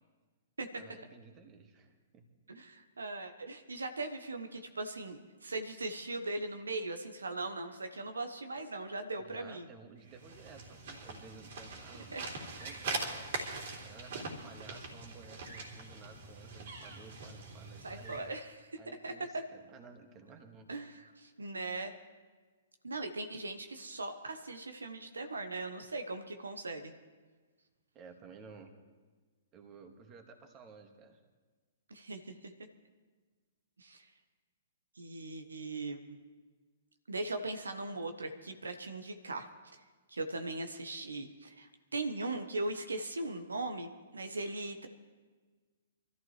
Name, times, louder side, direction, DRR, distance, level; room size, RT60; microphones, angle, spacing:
voice 1, 0.8-2.3 9.2-12.2 12.6-13.3 13.8-18.2 18.8-20.7 27.9-28.8 29.5-31.2, right 5 dB, 30° right, 5 dB, 2.1 m, -54 dB
voice 2, 2.5-9.7 12.1-12.2 17.8-19.4 20.7-21.9 22.8-26.9 31.9-32.5 33.8-34.1 34.9-36.0 37.1-39.8 40.1-44.9, right 2 dB, 80° right, 6 dB, 1.3 m, -39 dB
sound 1, 10.1-18.3, right 3 dB, 60° right, 3.4 m, -42 dB
24.5 x 14.0 x 3.3 m, 1.4 s
figure-of-eight pair, 120°, 0 cm